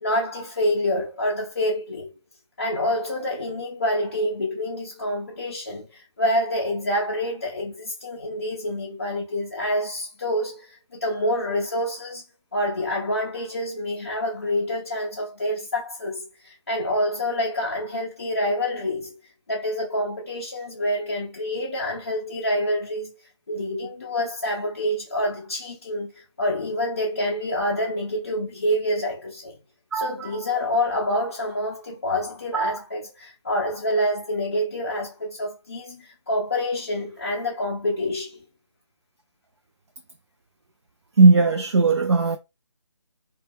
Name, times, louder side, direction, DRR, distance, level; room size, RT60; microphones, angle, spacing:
voice 1, 0.0-2.1 2.6-12.2 12.5-19.1 19.5-23.1 23.5-29.6 29.9-38.4, left 1 dB, 30° left, 0.4 m, -27 dB
voice 2, 41.2-42.4, right 3 dB, 60° right, 0.4 m, -17 dB
2.2 x 2.0 x 3.4 m
figure-of-eight pair, 150°, 15 cm